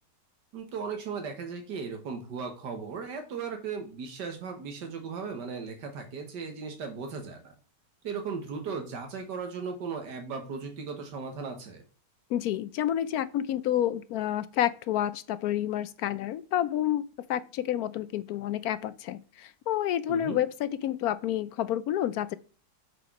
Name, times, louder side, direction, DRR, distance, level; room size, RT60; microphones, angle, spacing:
voice 1, 0.5-7.5 8.0-11.8 20.1-20.4, right 5 dB, 85° right, 1.9 m, -37 dB
voice 2, 12.3-17.0 17.3-22.4, left 11 dB, 70° left, 1.0 m, -29 dB
7.2 x 4.5 x 5.9 m
omnidirectional pair, 1.8 m